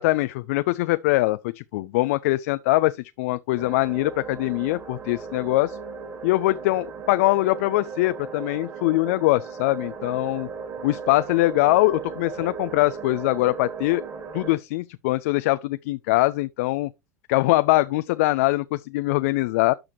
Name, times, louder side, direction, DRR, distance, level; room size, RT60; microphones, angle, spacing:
voice 1, 0.0-5.8 6.2-10.5 10.8-14.0 14.3-16.9 17.3-19.7, left 19 dB, 55° left, 0.4 m, -22 dB
sound 1, 3.6-14.6, right 5 dB, 35° right, 2.7 m, -37 dB
12.0 x 4.9 x 2.9 m
figure-of-eight pair, 85°, 9 cm